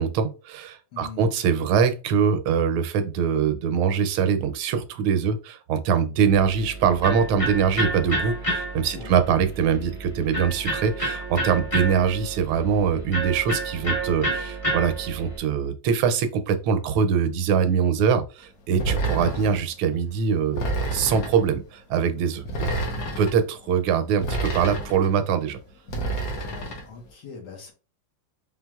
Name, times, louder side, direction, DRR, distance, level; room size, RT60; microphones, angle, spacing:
voice 1, 0.0-22.7 23.2-25.6, right 7 dB, 80° right, 9 dB, 1.4 m, -23 dB
voice 2, 0.9-1.3 8.9-9.1 18.8-19.3 22.6-23.2 26.3-27.7, left 5 dB, 75° left, 0 dB, 2.0 m, -42 dB
Electric guitar, 6.3-15.4, right 1 dB, 30° left, 0.7 m, -30 dB
sound 1, 18.8-19.6 20.5-21.5 22.5-23.3 24.2-25.1 25.9-26.9, right 2 dB, 55° left, 1.3 m, -28 dB
4.5 x 3.5 x 2.3 m, 0.32 s
omnidirectional pair, 2.4 m